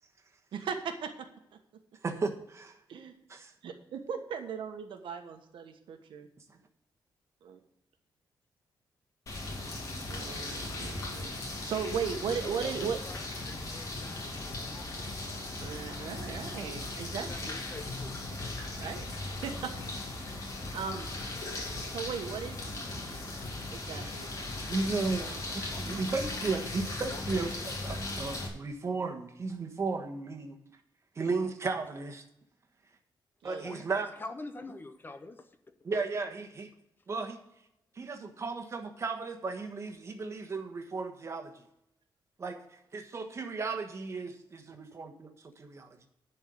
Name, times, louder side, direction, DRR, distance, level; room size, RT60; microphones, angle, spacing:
voice 1, 0.5-1.1 2.9-3.1 3.6-6.3 7.4-7.6 10.1-11.3 11.6-13.0 15.6-17.5 18.8-20.0 20.3-20.4 20.7-21.1 21.8-22.8 23.7-24.3 33.4-33.7, right 6 dB, 90° right, 6 dB, 1.3 m, -37 dB
voice 2, 2.0-2.8 3.3-3.5 6.5-6.6 24.7-30.5 31.1-32.2 33.4-34.1 35.8-36.7 37.1-37.4 37.9-41.5 42.4-42.6 42.9-46.0, right 4 dB, 35° right, 4 dB, 1.3 m, -35 dB
sound 1, 9.3-28.5, left 2 dB, 40° left, 2.4 m, -38 dB
voice 3, 12.4-14.8 16.2-16.6 17.1-18.1 25.7-26.1 27.1-27.6 33.6-35.5, left 2 dB, 25° left, 9 dB, 0.7 m, -46 dB
10.5 x 4.6 x 7.9 m, 0.81 s
wide cardioid pair, 150°, 8 cm